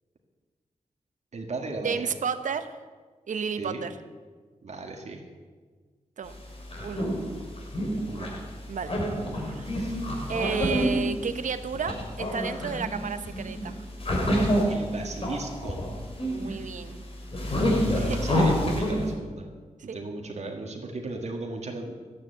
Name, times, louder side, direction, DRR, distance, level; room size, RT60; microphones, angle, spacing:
voice 1, 1.3-2.1 3.6-3.9 4.6-5.2 8.1-8.3 9.7-10.0 14.7-15.8 18.2-19.5 19.8-21.9, right 3 dB, 60° right, 2 dB, 1.8 m, -36 dB
voice 2, 1.8-2.8 3.3-3.9 6.2-6.4 6.8-7.2 8.7-9.1 9.4-9.9 10.3-13.8 16.2-17.0 17.9-18.2 19.9-20.0, right 6 dB, 80° right, 10 dB, 0.9 m, -32 dB
sound 1, 6.3-19.1, equal, 50° left, 3.1 m, -28 dB
12.0 x 9.8 x 8.0 m, 1.5 s
wide cardioid pair, 115°, 13 cm